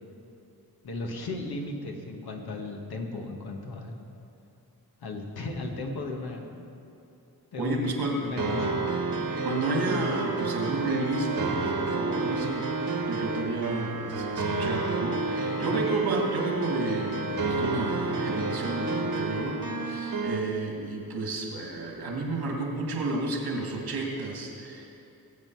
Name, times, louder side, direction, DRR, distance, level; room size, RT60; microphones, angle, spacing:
voice 1, 0.8-4.0 5.0-6.6 7.5-8.9 15.5-15.8, left 2 dB, 80° left, 1 dB, 1.6 m, -35 dB
voice 2, 7.6-8.2 9.4-24.9, right 2 dB, 85° right, 0 dB, 2.3 m, -31 dB
sound 1, 8.4-20.4, right 3 dB, 65° right, 1.5 m, -30 dB
20.5 x 7.6 x 4.7 m, 2.8 s
cardioid pair, 70°, 37 cm